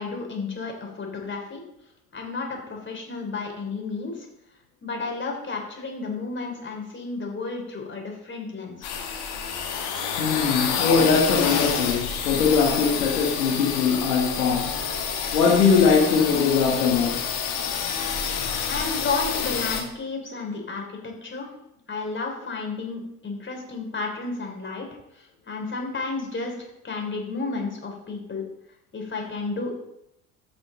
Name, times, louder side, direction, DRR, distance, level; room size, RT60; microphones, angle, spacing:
voice 1, 0.0-1.6 2.1-4.3 4.8-8.9 18.7-21.5 21.9-24.9 25.1-28.4 28.9-29.7, left 3 dB, 25° left, 1 dB, 3.4 m, -32 dB
sound 1, 8.8-19.8, left 6 dB, 55° left, 2.1 m, -28 dB
voice 2, 10.2-14.8 15.3-17.2, left 5 dB, 80° left, -4 dB, 1.9 m, -21 dB
14.0 x 6.2 x 3.9 m, 0.82 s
figure-of-eight pair, 60°, 46 cm